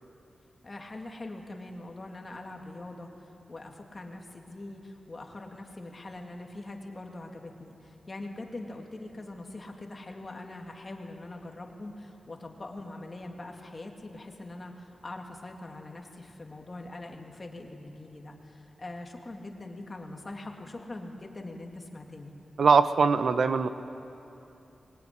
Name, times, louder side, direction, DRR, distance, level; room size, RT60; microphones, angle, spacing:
voice 1, 0.6-22.3, left 2 dB, 30° left, 2 dB, 2.9 m, -43 dB
voice 2, 22.6-23.7, right 5 dB, 70° right, 10 dB, 1.0 m, -21 dB
24.5 x 22.0 x 10.0 m, 2.8 s
wide cardioid pair, 100°, 0 cm